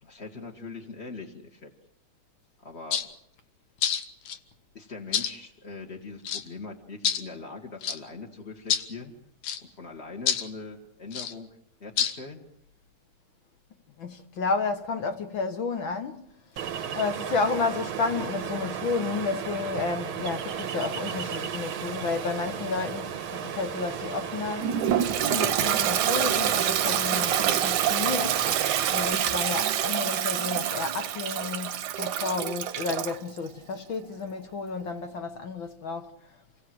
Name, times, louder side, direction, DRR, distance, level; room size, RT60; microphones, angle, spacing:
voice 1, 0.0-1.7 2.6-3.0 4.7-9.2 9.6-11.5 11.8-12.4, left 3 dB, 25° left, 1.7 m, -41 dB
sound 1, 2.9-3.1 3.8-4.4 5.1-5.3 6.3-6.5 7.1-7.2 7.8-8.0 8.7-8.9 9.4-9.6 10.3-10.5 11.1-11.3 12.0-12.2, left 8 dB, 80° left, 2.7 m, -27 dB
voice 2, 14.0-16.3 16.9-24.7 25.3-28.5 28.9-36.1, left 4 dB, 50° left, 1.7 m, -31 dB
Ocean, 16.6-29.1, right 8 dB, 55° right, 1.6 m, -35 dB
Toilet flush, 24.6-33.2, right 10 dB, 80° right, 2.5 m, -26 dB
30.0 x 17.0 x 7.9 m
omnidirectional pair, 3.4 m